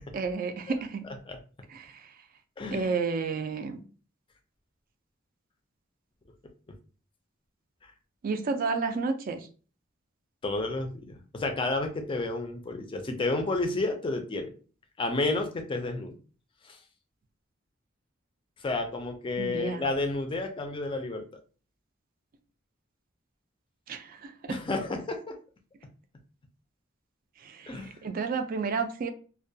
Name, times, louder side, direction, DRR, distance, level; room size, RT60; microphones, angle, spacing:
voice 1, 0.1-1.1 1.7-2.0 2.7-3.8 8.2-9.5 19.4-19.8 23.9-24.6 27.4-29.1, right 4 dB, 45° right, 0.3 m, -31 dB
voice 2, 2.6-2.9 7.8-7.9 10.4-14.5 15.0-16.2 16.6-16.8 18.6-21.2 24.5-25.3 27.7-27.9, left 2 dB, 25° left, 0.4 m, -31 dB
2.2 x 2.1 x 2.6 m
head